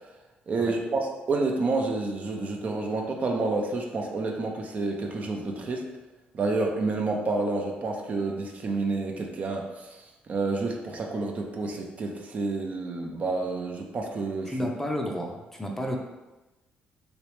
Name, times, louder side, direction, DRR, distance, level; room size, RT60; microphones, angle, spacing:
voice 1, 0.5-5.9 6.3-14.7, right 3 dB, 45° right, 1 dB, 0.5 m, -29 dB
voice 2, 14.5-16.0, equal, 10° left, 1 dB, 0.5 m, -31 dB
3.1 x 3.0 x 3.1 m, 1.1 s
cardioid pair, 90°, 3 cm